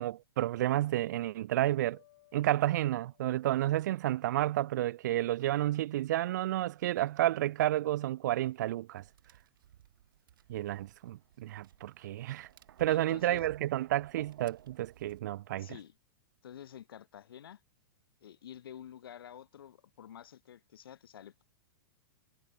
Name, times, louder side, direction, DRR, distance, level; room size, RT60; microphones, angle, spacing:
voice 1, 0.0-2.0 2.3-9.0 10.5-12.5 12.8-15.7, right 14 dB, 55° right, 0.5 m, -31 dB
sound 1, 1.9-5.0, left 16 dB, 50° left, 4.5 m, -68 dB
Tap, 9.0-15.2, right 11 dB, 70° right, 2.6 m, -55 dB
voice 2, 12.9-13.5 15.6-15.9 16.4-17.6 18.2-21.4, left 10 dB, 85° left, 2.4 m, -49 dB
supercardioid pair, 170°, 12 cm